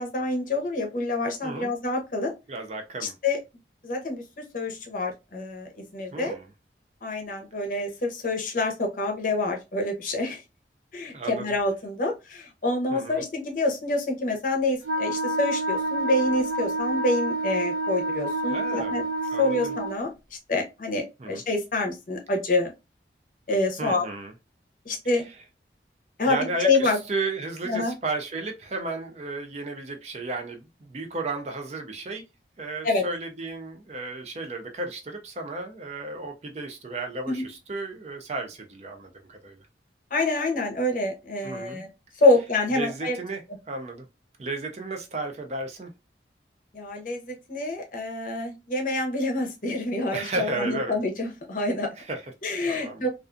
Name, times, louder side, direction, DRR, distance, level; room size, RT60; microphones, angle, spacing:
voice 1, 0.0-2.3 3.2-3.4 3.8-4.2 4.5-6.3 7.0-10.4 10.9-19.0 19.4-20.1 20.5-22.7 23.5-24.1 24.9-25.3 26.2-26.4 26.6-27.0 27.6-27.9 32.8-33.0 37.3-37.4 40.1-41.9 42.2-43.2 46.7-51.9 52.4-53.1, left 2 dB, 45° left, 0.6 m, -27 dB
voice 2, 2.5-3.1 6.1-6.5 11.1-11.5 12.9-13.2 18.5-19.0 19.3-19.7 21.2-21.3 23.8-24.3 26.3-32.2 32.6-39.6 41.4-41.8 42.7-43.4 43.7-44.1 44.4-45.9 50.1-51.0 52.0-52.3 52.6-53.1, right 3 dB, 35° right, 0.4 m, -33 dB
Wind instrument woodwind instrument, 14.8-20.0, right 1 dB, 85° right, 1.2 m, -28 dB
2.4 x 2.3 x 2.4 m
head